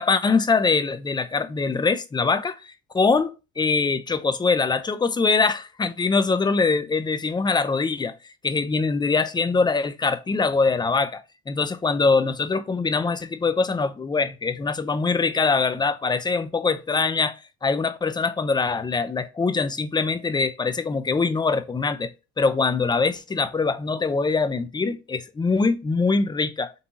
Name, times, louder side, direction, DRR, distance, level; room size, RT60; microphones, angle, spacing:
voice 1, 0.0-8.1 8.4-22.1 22.4-26.7, left 4 dB, 15° left, 0.4 m, -23 dB
3.9 x 2.8 x 2.5 m
hypercardioid pair, 60°, 35 cm